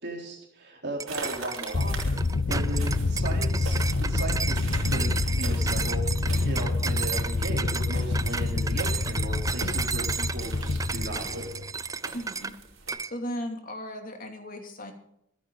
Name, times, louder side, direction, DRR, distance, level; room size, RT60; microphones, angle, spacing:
voice 1, 0.0-2.2 2.5-11.6, right 1 dB, 60° right, 0 dB, 4.0 m, -37 dB
sound 1, 1.0-12.6 12.9-13.1, right 5 dB, 15° right, 0.4 m, -33 dB
sound 2, 1.1-12.9, right 3 dB, 80° right, 4.8 m, -43 dB
sound 3, 1.7-11.8, left 3 dB, 60° left, 0.7 m, -27 dB
voice 2, 12.1-12.5 13.0-14.9, equal, 45° left, 4 dB, 2.9 m, -36 dB
25.5 x 9.2 x 4.1 m, 0.74 s
head